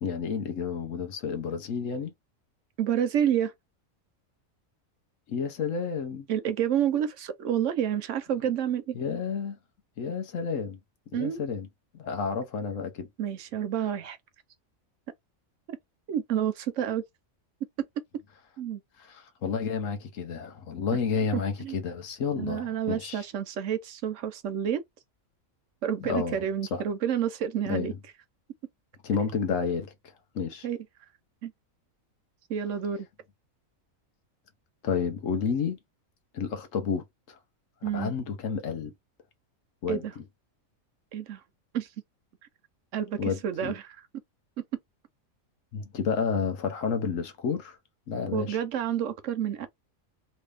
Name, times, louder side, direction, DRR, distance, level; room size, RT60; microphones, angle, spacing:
voice 1, 0.0-2.1 5.3-6.3 8.9-9.6 10.0-10.8 11.1-11.7 11.9-13.1 19.0-23.2 26.0-26.8 27.7-28.0 29.0-30.7 34.8-35.8 36.3-37.4 37.8-38.9 39.8-40.2 43.2-43.8 45.7-47.8 48.1-48.6, left 6 dB, 70° left, 1.2 m, -31 dB
voice 2, 2.8-3.5 6.3-9.0 11.1-11.4 13.2-14.2 15.7-15.8 16.1-17.0 18.6-18.8 21.3-21.8 22.4-24.8 25.8-27.9 30.6-30.8 31.4-31.5 32.5-33.1 37.8-38.1 39.9-40.1 41.1-41.4 41.7-41.9 42.9-43.8 48.3-49.7, right 9 dB, 70° right, 0.9 m, -29 dB
3.3 x 2.6 x 3.3 m
omnidirectional pair, 1.4 m